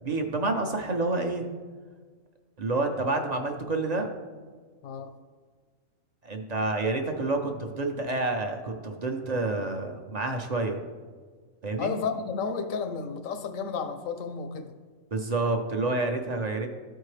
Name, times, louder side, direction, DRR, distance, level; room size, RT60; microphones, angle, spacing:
voice 1, 0.0-1.5 2.6-4.1 6.2-10.8 11.6-11.9 15.1-16.7, right 2 dB, 40° right, 4 dB, 0.6 m, -28 dB
voice 2, 11.8-14.7, left 5 dB, 90° left, 7 dB, 1.2 m, -32 dB
13.0 x 4.5 x 3.2 m, 1.5 s
omnidirectional pair, 1.3 m